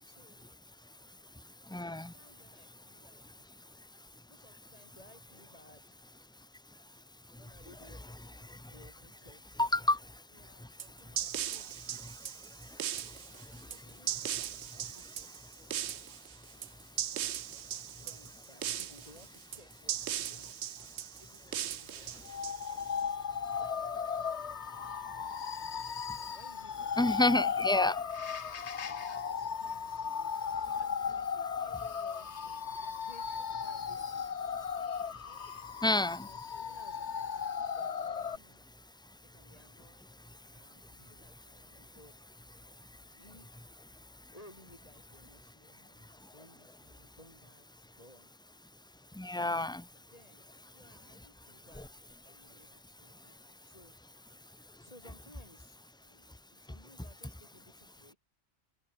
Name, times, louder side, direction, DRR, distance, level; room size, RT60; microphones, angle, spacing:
voice 1, 0.0-1.3 1.8-3.2 4.3-6.0 7.4-9.6 10.3-12.0 12.7-16.1 16.5-20.6 21.2-23.1 23.6-27.7 28.4-34.3 34.7-35.5 36.1-38.6 39.3-42.2 42.5-43.7 44.3-48.3 49.3-49.4 49.9-54.0 54.8-58.2, left 1 dB, 35° left, 7.3 m, -61 dB
voice 2, 1.7-2.1 9.6-10.0 27.0-28.0 35.8-36.3 49.2-49.8, left 2 dB, 5° left, 0.6 m, -28 dB
sound 1, 10.8-23.0, right 11 dB, 80° right, 1.0 m, -38 dB
sound 2, 22.2-38.4, left 6 dB, 80° left, 1.6 m, -36 dB
omnidirectional pair, 1.1 m